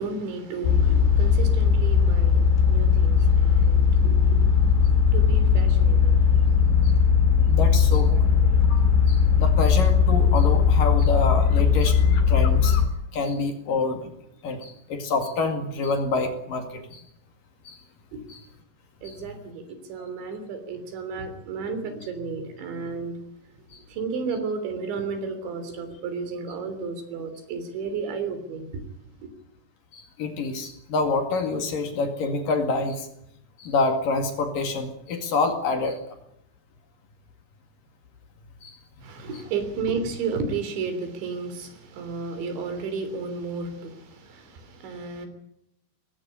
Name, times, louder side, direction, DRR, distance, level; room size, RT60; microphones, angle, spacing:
voice 1, 0.0-6.5 7.2-7.6 8.1-8.5 18.1-18.2 19.0-23.2 23.9-28.8 29.2-29.3 39.0-45.3, right 4 dB, 80° right, 5.7 m, -33 dB
sound 1, 0.6-12.9, left 6 dB, 80° left, 4.3 m, -19 dB
voice 2, 7.5-8.1 8.7-12.0 12.3-12.8 13.1-14.1 14.4-17.1 17.7-17.8 18.3-18.4 19.1-19.2 23.7-23.8 29.9-33.1 33.6-36.2 38.6-39.1, left 3 dB, 55° left, 3.5 m, -27 dB
20.0 x 17.0 x 10.0 m
omnidirectional pair, 5.2 m